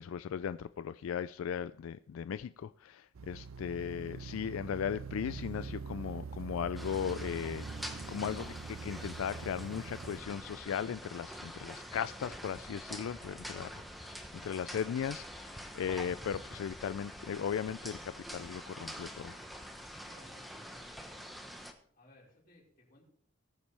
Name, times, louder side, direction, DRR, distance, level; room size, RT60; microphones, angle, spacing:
voice 1, 0.0-19.4, left 8 dB, 85° left, 0.3 m, -37 dB
sound 1, 3.1-10.2, right 5 dB, 85° right, 0.5 m, -44 dB
sound 2, 6.8-21.7, equal, ahead, 1.0 m, -46 dB
voice 2, 20.0-21.3 21.9-23.0, left 1 dB, 45° left, 4.8 m, -60 dB
19.5 x 7.2 x 3.3 m
head